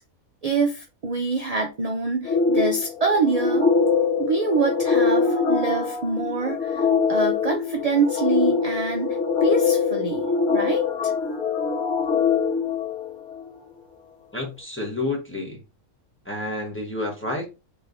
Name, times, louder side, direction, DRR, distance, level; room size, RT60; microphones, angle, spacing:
voice 1, 0.4-3.7 4.2-11.1, right 4 dB, 50° right, 0.4 m, -25 dB
sound 1, 2.2-13.6, left 5 dB, 50° left, 1.4 m, -23 dB
voice 2, 14.3-15.6 16.2-17.5, left 2 dB, 10° left, 1.1 m, -29 dB
3.8 x 3.2 x 2.6 m
omnidirectional pair, 1.5 m